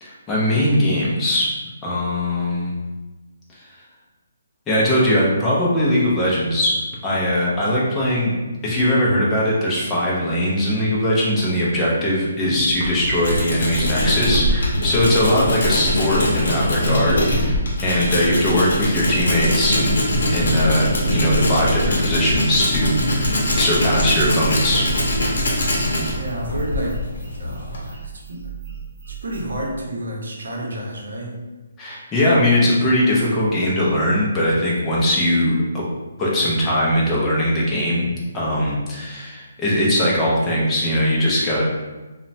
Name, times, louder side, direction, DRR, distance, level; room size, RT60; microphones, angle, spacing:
voice 1, 0.0-1.5 1.8-2.7 4.7-6.7 7.0-8.3 8.6-19.9 20.3-24.8 31.8-35.8 36.2-41.6, left 1 dB, 10° left, -6 dB, 0.4 m, -20 dB
Tools, 12.5-27.9, left 1 dB, 55° left, 0.7 m, -22 dB
sound 1, 17.9-29.7, right 8 dB, 35° right, 1.0 m, -37 dB
voice 2, 26.2-27.0 27.4-28.5 29.1-31.4, right 1 dB, 70° right, -2 dB, 0.7 m, -30 dB
2.9 x 2.1 x 2.6 m, 1.2 s
hypercardioid pair, 180°, 0 cm